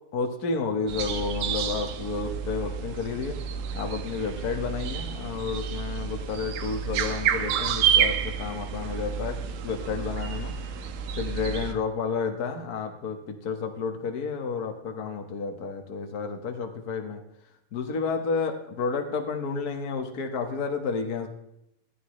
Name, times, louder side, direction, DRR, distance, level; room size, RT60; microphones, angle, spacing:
voice 1, 0.1-3.4 3.7-10.5 11.2-17.2 17.7-21.3, left 5 dB, 75° left, 4 dB, 0.8 m, -31 dB
sound 1, 0.9-11.7, right 8 dB, 75° right, 2.7 m, -29 dB
20.5 x 14.0 x 3.2 m, 0.81 s
omnidirectional pair, 4.1 m